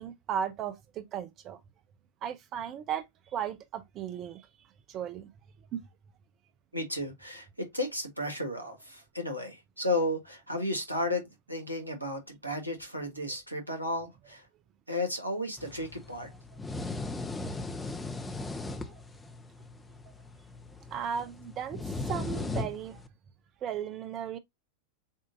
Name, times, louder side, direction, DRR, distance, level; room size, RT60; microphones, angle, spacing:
voice 1, 0.0-1.6 2.2-4.5 4.9-5.3 5.7-5.8 18.8-19.0 20.9-23.0 23.6-24.4, right 8 dB, 35° right, 0.4 m, -36 dB
voice 2, 6.7-14.5 14.9-16.3, left 1 dB, 85° right, 1.4 m, -33 dB
sound 1, 15.6-23.1, left 3 dB, 10° left, 0.7 m, -38 dB
7.1 x 2.5 x 2.5 m
figure-of-eight pair, 90°, 0 cm